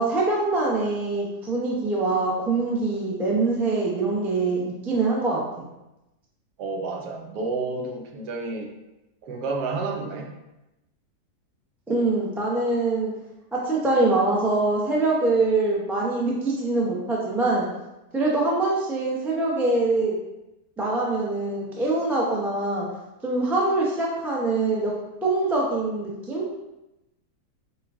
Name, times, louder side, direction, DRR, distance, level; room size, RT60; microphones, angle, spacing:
voice 1, 0.0-5.4 11.9-13.1 13.5-17.7 18.1-20.1 20.8-22.9 23.2-24.9 25.2-26.5, right 2 dB, 5° right, -4 dB, 0.3 m, -24 dB
voice 2, 6.6-8.7 9.2-10.3, right 3 dB, 80° right, 1 dB, 1.2 m, -30 dB
5.5 x 2.3 x 3.6 m, 0.95 s
omnidirectional pair, 1.7 m